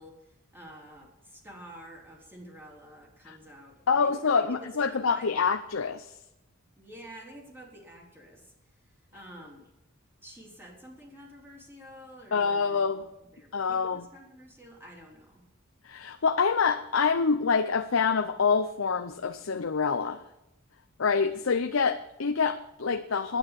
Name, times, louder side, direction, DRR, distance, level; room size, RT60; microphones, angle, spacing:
voice 1, 0.0-5.4 6.8-8.8 9.1-9.7 10.2-15.4, equal, 10° right, -1 dB, 3.5 m, -49 dB
voice 2, 3.9-6.1 12.3-13.0 13.5-14.1 15.8-20.2 21.0-23.4, left 5 dB, 80° left, 8 dB, 0.7 m, -26 dB
10.5 x 9.3 x 8.8 m, 0.92 s
head